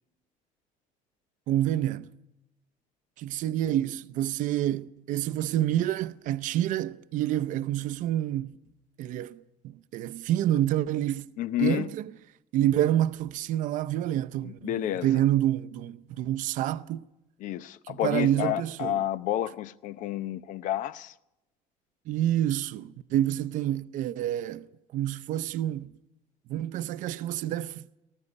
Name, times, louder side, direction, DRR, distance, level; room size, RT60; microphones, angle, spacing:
voice 1, 1.5-2.1 3.2-8.6 9.0-11.3 11.6-12.0 12.5-14.7 15.0-17.0 17.9-19.0 22.1-24.7 24.9-25.9 26.5-27.8, right 12 dB, 65° right, 0.6 m, -28 dB
voice 2, 11.4-11.9 14.4-15.1 17.4-21.1, left 12 dB, 65° left, 0.7 m, -30 dB
19.0 x 14.5 x 9.6 m
cardioid pair, 145°, 15 cm